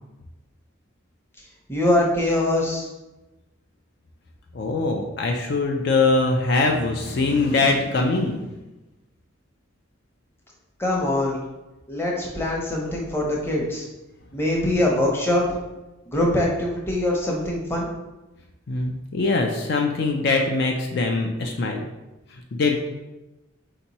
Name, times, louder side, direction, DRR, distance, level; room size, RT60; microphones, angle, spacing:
voice 1, 1.7-2.9 10.8-11.4 11.9-13.9 14.3-15.6 16.1-17.9, left 1 dB, 10° left, -2 dB, 0.7 m, -23 dB
voice 2, 4.5-8.5 18.7-21.8 22.3-22.8, left 3 dB, 55° left, 2 dB, 0.4 m, -22 dB
4.4 x 2.9 x 4.1 m, 1.0 s
head